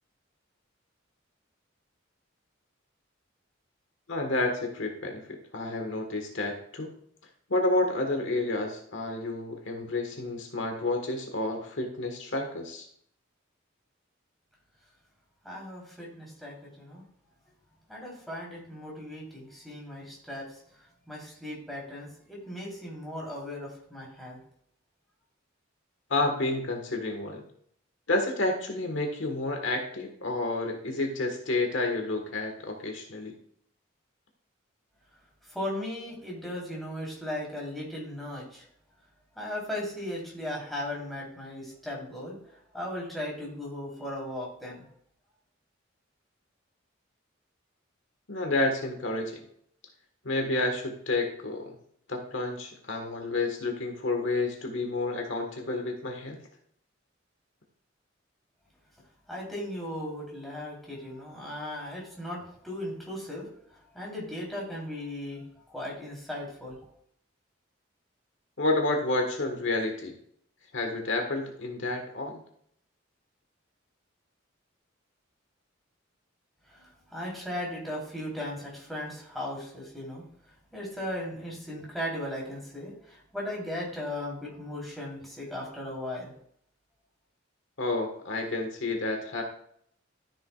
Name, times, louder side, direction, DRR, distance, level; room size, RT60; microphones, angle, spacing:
voice 1, 4.1-6.9 7.5-12.9 26.1-27.4 28.1-33.4 48.3-49.4 50.2-51.8 52.1-56.4 68.6-70.2 70.7-72.4 87.8-89.4, left 2 dB, 70° left, 3 dB, 1.5 m, -30 dB
voice 2, 15.4-17.0 17.9-20.6 21.1-24.4 35.5-38.6 39.4-42.4 42.7-44.8 59.3-63.5 63.9-65.4 65.7-66.8 76.7-80.2 80.7-86.3, left 1 dB, ahead, -4 dB, 3.5 m, -37 dB
13.0 x 7.0 x 2.4 m, 0.67 s
head